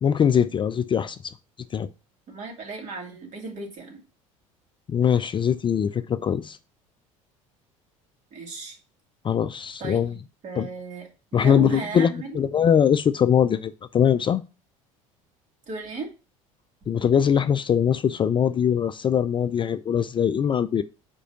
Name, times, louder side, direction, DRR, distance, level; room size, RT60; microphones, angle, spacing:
voice 1, 0.0-1.3 1.7-1.9 4.9-6.6 9.2-10.1 10.6-10.7 11.3-14.4 16.9-20.8, left 8 dB, 30° left, 0.4 m, -22 dB
voice 2, 2.3-4.0 8.3-8.8 9.8-12.5 15.7-16.1, right 4 dB, 45° right, 2.8 m, -36 dB
5.0 x 4.6 x 5.7 m
hypercardioid pair, 70°, 17 cm